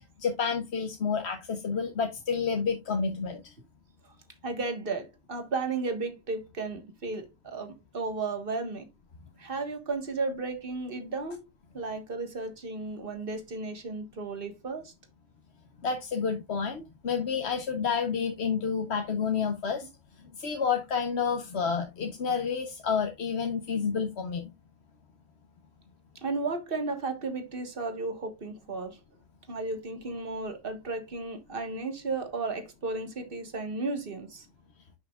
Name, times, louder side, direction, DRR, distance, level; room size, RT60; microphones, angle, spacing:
voice 1, 0.0-3.5 15.8-19.9 20.3-24.5, left 6 dB, 60° left, 1.3 m, -29 dB
voice 2, 4.4-8.9 9.4-11.5 11.7-14.9 26.2-29.0 29.5-34.5, right 3 dB, 45° right, 1.7 m, -34 dB
10.0 x 5.8 x 2.4 m
omnidirectional pair, 1.3 m